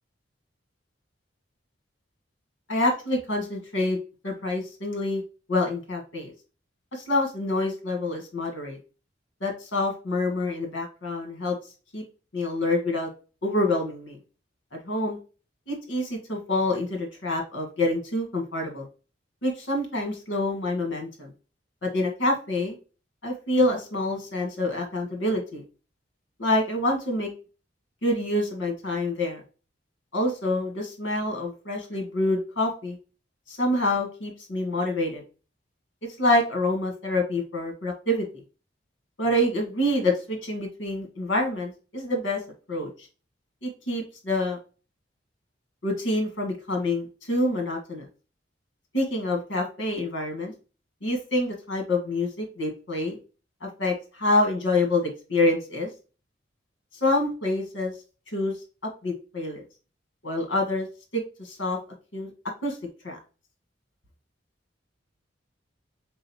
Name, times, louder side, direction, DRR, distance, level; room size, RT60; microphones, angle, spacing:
voice 1, 2.7-4.0 4.2-5.2 5.5-6.3 6.9-8.8 9.4-11.6 11.9-12.0 12.3-13.1 13.4-14.2 14.8-15.2 15.7-18.8 19.4-21.3 21.8-22.7 23.2-25.6 26.4-27.3 28.0-29.4 30.1-33.0 33.5-35.2 36.2-38.2 39.2-42.4 42.7-42.9 43.6-44.6 45.8-48.1 48.9-50.5 51.0-53.2 53.6-55.9 57.0-57.9 58.3-58.5 59.0-59.6 60.2-60.9 61.1-61.8 62.1-62.3 62.6-62.8 63.0-63.2, left 1 dB, 80° left, 3 dB, 1.4 m, -26 dB
3.9 x 3.8 x 2.8 m, 0.35 s
head